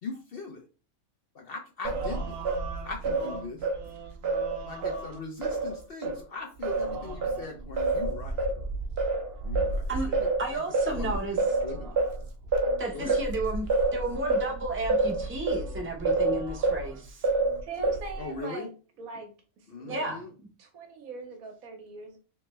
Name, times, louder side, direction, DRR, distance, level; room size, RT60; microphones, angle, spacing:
voice 1, 0.0-0.6 1.3-2.4 2.8-3.7 4.6-8.4 9.4-12.0 12.9-13.2 18.2-18.7 19.7-20.3, left 3 dB, 55° left, 0.7 m, -40 dB
Singing, 1.8-6.2 6.6-16.9 17.2-18.2, right 3 dB, 60° right, 0.7 m, -29 dB
voice 2, 10.4-11.4 12.8-17.3 19.9-20.2, right 2 dB, 15° right, 0.6 m, -32 dB
voice 3, 17.6-18.7 19.0-19.3 19.8-20.1 20.6-22.2, right 4 dB, 80° right, 1.4 m, -41 dB
3.2 x 3.2 x 3.0 m
omnidirectional pair, 1.4 m